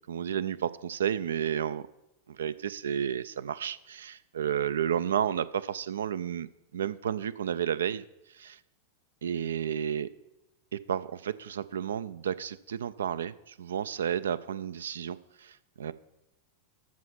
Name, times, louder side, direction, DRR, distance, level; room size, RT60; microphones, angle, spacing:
voice 1, 0.1-1.9 2.4-6.5 6.7-8.0 8.4-8.6 9.2-10.1 10.7-15.9, right 9 dB, 65° right, 16 dB, 0.3 m, -32 dB
13.5 x 4.9 x 5.7 m, 0.91 s
figure-of-eight pair, 90°, 0 cm